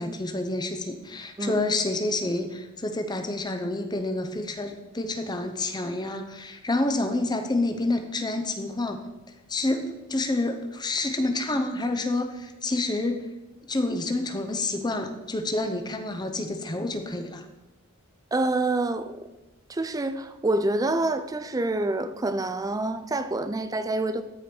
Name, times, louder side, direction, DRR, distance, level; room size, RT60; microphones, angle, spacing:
voice 1, 0.0-9.0 9.5-13.3 13.7-17.4, left 2 dB, 20° left, 0.7 m, -28 dB
voice 2, 18.3-19.3 19.7-24.2, right 2 dB, 15° right, 0.4 m, -27 dB
13.5 x 4.9 x 4.4 m
head